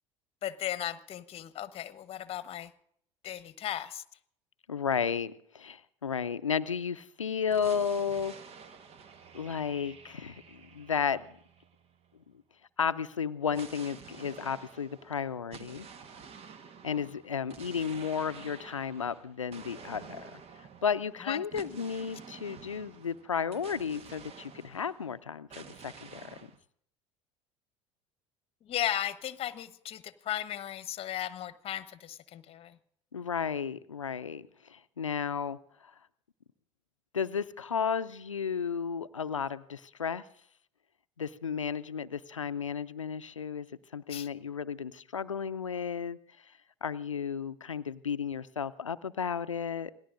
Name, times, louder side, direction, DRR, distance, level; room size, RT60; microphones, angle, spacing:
voice 1, 0.4-2.7 3.2-4.0 21.2-21.4 28.7-32.8 44.1-44.3, left 11 dB, 40° left, 14 dB, 1.0 m, -36 dB
voice 2, 4.7-8.3 9.3-11.2 12.8-15.9 16.8-20.4 20.8-26.2 33.1-35.6 37.1-40.2 41.2-43.7 43.9-46.2 46.8-49.9, left 6 dB, 90° left, 13 dB, 0.6 m, -33 dB
sound 1, 7.5-12.2 13.5-25.2 25.5-26.6, right 6 dB, 40° right, 1.2 m, -50 dB
27.5 x 19.0 x 2.5 m, 0.66 s
figure-of-eight pair, 70°, 16 cm